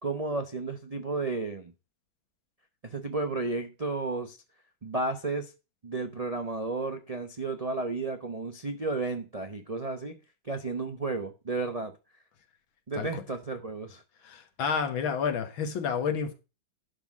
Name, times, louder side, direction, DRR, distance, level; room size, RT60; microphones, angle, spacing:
voice 1, 0.0-1.7 2.8-4.4 4.8-5.5 5.8-10.2 10.4-11.9 12.9-14.0, right 3 dB, 60° right, 0.3 m, -32 dB
voice 2, 14.2-16.3, left 6 dB, 80° left, 2.1 m, -30 dB
11.5 x 3.8 x 7.4 m
omnidirectional pair, 2.2 m